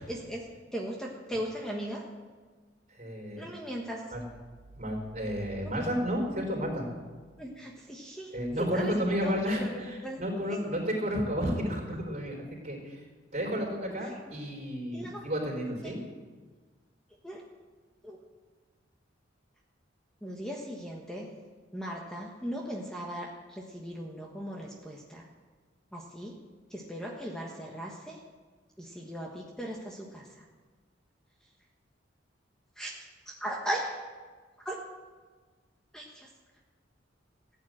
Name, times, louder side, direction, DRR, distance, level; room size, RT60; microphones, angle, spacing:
voice 1, 0.1-0.4 0.7-2.0 3.4-4.1 7.4-9.7 10.0-10.2 10.5-10.6 14.0-14.1 14.9-15.3 15.8-16.0 17.2-17.4 18.0-18.2 20.2-21.4 21.7-25.3 25.9-26.4 26.7-28.2 28.8-30.5 32.8-34.0 34.6-34.8 35.9-36.3, equal, 5° left, -1 dB, 1.3 m, -38 dB
voice 2, 2.9-3.5 4.1-4.2 4.7-6.9 8.3-13.0 13.3-16.0, equal, 40° right, 0 dB, 4.4 m, -32 dB
15.5 x 9.0 x 7.7 m, 1.4 s
head